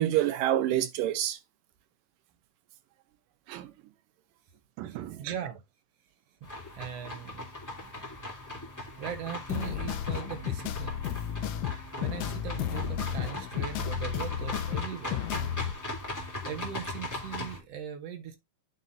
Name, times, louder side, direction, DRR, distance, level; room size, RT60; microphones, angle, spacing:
voice 1, 0.0-1.4 3.5-3.7 4.8-5.3, right 13 dB, 90° right, 2.5 m, -28 dB
voice 2, 4.9-5.6 6.4-7.4 9.0-11.0 11.7-15.2 16.4-18.4, right 9 dB, 60° right, 1.9 m, -40 dB
sound 1, 6.4-17.6, left 2 dB, 5° left, 2.5 m, -39 dB
sound 2, 9.5-15.7, left 9 dB, 75° left, 2.1 m, -33 dB
8.2 x 6.1 x 2.7 m
omnidirectional pair, 3.7 m